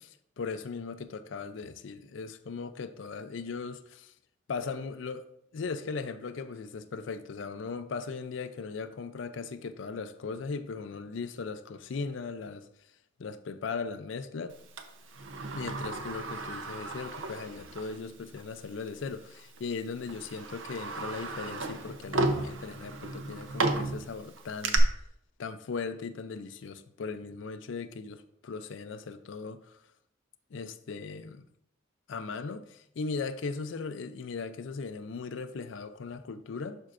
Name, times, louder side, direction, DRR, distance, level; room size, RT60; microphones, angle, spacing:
voice 1, 0.0-4.1 4.5-5.2 5.5-12.7 13.2-14.6 15.5-24.8 25.4-29.8 30.5-31.4 32.1-36.8, left 4 dB, 80° left, 0.4 m, -38 dB
Sliding door, 14.8-18.0 18.4-18.5 19.4-19.6 20.1-24.8, right 2 dB, 85° right, 0.7 m, -34 dB
11.0 x 4.4 x 2.5 m
head